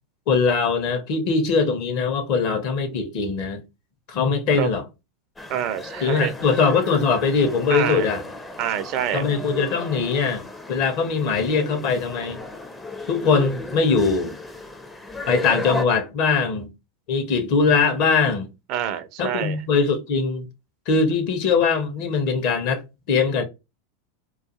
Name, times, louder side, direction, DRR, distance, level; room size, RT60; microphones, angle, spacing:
voice 1, 0.3-3.6 4.1-4.8 6.0-8.2 9.1-12.4 13.1-14.3 15.3-16.7 17.1-18.5 19.2-20.5 20.9-22.8 23.1-23.4, left 5 dB, 55° left, 0.7 m, -21 dB
sound 1, 5.4-15.8, left 2 dB, 15° left, 0.4 m, -35 dB
voice 2, 5.5-6.3 7.7-8.1 8.6-9.3 18.7-19.6, right 10 dB, 50° right, 0.4 m, -26 dB
2.3 x 2.3 x 2.8 m
hypercardioid pair, 90°, 0 cm